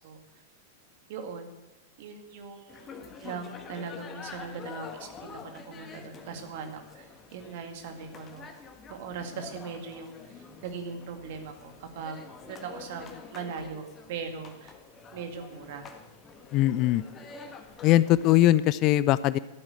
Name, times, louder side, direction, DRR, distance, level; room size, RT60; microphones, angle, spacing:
voice 1, 0.0-0.4 1.1-1.5 2.0-8.5 8.9-12.2 12.4-14.7 15.1-15.9, right 5 dB, 50° right, 6 dB, 2.1 m, -40 dB
Ambience diningroom, 2.7-18.6, left 5 dB, 25° left, 1.6 m, -47 dB
voice 2, 16.5-17.0 17.8-19.4, left 14 dB, 40° left, 18 dB, 0.4 m, -21 dB
13.0 x 8.8 x 8.1 m, 1.0 s
figure-of-eight pair, 95°, 0 cm